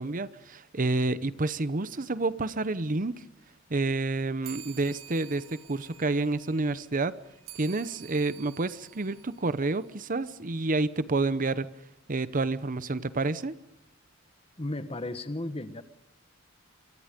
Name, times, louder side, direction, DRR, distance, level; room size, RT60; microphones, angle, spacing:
voice 1, 0.0-3.2 3.7-7.1 7.6-11.7 12.1-13.6, right 3 dB, 40° right, 15 dB, 0.8 m, -29 dB
sound 1, 4.4-10.3, right 11 dB, 75° right, 2.0 m, -50 dB
voice 2, 14.6-15.8, left 1 dB, 30° left, 11 dB, 1.3 m, -34 dB
26.5 x 24.5 x 5.2 m, 0.78 s
head